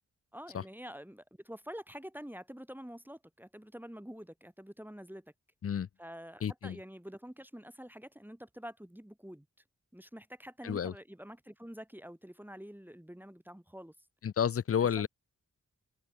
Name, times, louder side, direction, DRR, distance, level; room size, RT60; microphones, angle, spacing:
voice 1, 0.3-5.3 6.0-9.5 9.9-13.9 15.0-15.1, equal, 5° right, 2.3 m, -47 dB
voice 2, 6.4-6.8 10.6-10.9 14.2-15.1, left 8 dB, 45° left, 0.4 m, -30 dB
wide cardioid pair, 85°, 32 cm